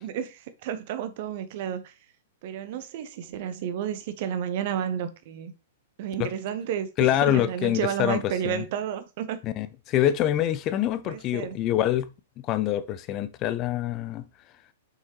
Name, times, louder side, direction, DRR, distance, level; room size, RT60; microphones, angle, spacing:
voice 1, 0.0-1.9 2.4-5.5 6.0-9.4 11.0-11.6, right 9 dB, 45° right, 1.1 m, -31 dB
voice 2, 7.0-8.6 9.4-12.1 12.4-14.3, left 12 dB, 30° left, 0.6 m, -25 dB
6.8 x 6.6 x 3.1 m
figure-of-eight pair, 105°, 0 cm